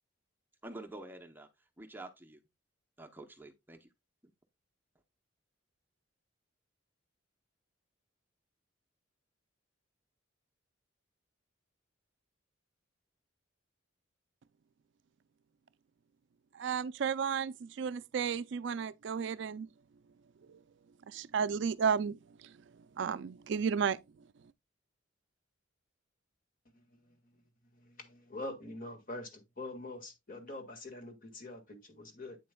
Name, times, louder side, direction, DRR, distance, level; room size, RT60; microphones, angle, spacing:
voice 1, 0.6-1.5 1.8-2.4 3.0-3.9, right 2 dB, 10° right, 0.6 m, -48 dB
voice 2, 16.5-19.7 20.5-20.6 21.1-22.2 23.0-24.0, right 6 dB, 60° right, 0.4 m, -33 dB
voice 3, 26.7-32.4, left 2 dB, 45° left, 1.7 m, -45 dB
8.7 x 7.5 x 2.2 m
head